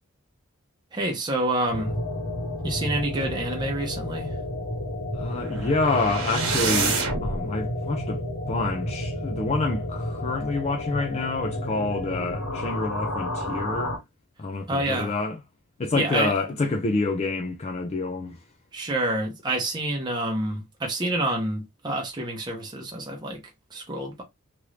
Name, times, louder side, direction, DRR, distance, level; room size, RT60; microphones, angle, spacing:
voice 1, 0.9-2.0 2.6-4.4 14.7-15.2 15.9-16.4 18.7-23.4 23.7-24.2, right 1 dB, 20° right, 0.7 m, -28 dB
sound 1, 1.7-14.0, left 1 dB, 80° left, 1.3 m, -31 dB
voice 2, 5.1-14.0 14.4-15.4 15.8-18.4, left 3 dB, 30° left, 0.4 m, -28 dB
sound 2, 5.2-7.4, right 4 dB, 70° right, 1.2 m, -27 dB
3.0 x 2.5 x 3.1 m
head